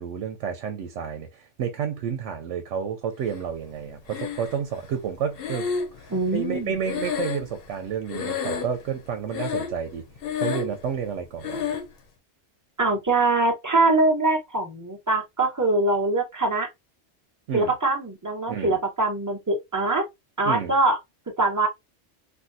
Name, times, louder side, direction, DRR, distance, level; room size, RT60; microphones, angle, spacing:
voice 1, 0.0-5.7 6.0-10.0 10.4-11.6 17.5-17.7 18.5-18.8 20.4-20.7, right 7 dB, 90° right, 0.9 m, -30 dB
Breathing, 4.1-4.8 5.4-7.8 8.1-8.9 9.3-9.9 10.2-10.8 11.4-11.9, left 7 dB, 60° left, 0.8 m, -30 dB
voice 2, 6.1-6.8 12.8-16.7 17.5-20.0 20.4-21.0 21.4-21.7, right 2 dB, 15° right, 0.9 m, -23 dB
3.5 x 2.2 x 2.6 m
omnidirectional pair, 1.2 m